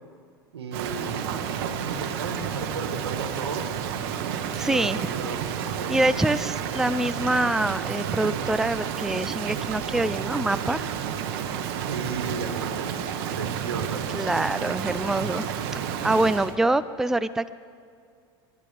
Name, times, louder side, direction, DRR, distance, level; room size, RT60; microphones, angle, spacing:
voice 1, 0.5-1.4 1.7-3.7 4.6-6.0 11.7-13.0 13.3-14.2, right 4 dB, 90° right, 6 dB, 1.6 m, -34 dB
Rain, 0.7-16.6, right 8 dB, 65° right, 1.2 m, -31 dB
voice 2, 4.6-5.0 5.9-10.9 14.1-15.5 16.0-17.5, right 2 dB, 5° right, 14 dB, 0.4 m, -25 dB
30.0 x 12.0 x 3.4 m, 2.3 s
hypercardioid pair, 85°, 13 cm